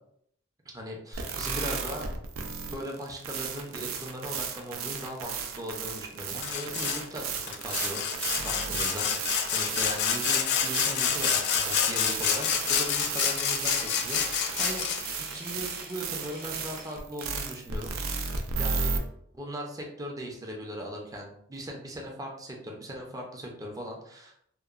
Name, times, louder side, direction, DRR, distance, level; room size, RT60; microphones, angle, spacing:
voice 1, 0.7-2.1 2.7-8.0 8.4-9.1 9.5-17.9 18.6-19.0 19.3-24.3, equal, 15° right, 0 dB, 0.5 m, -39 dB
sound 1, 1.1-19.0, right 5 dB, 90° right, 0.4 m, -34 dB
Sawing, 6.4-7.0 7.5-15.2, left 7 dB, 55° left, 0.3 m, -28 dB
sound 2, 8.0-17.7, right 2 dB, 50° right, 0.7 m, -47 dB
2.9 x 2.0 x 2.4 m, 0.69 s
head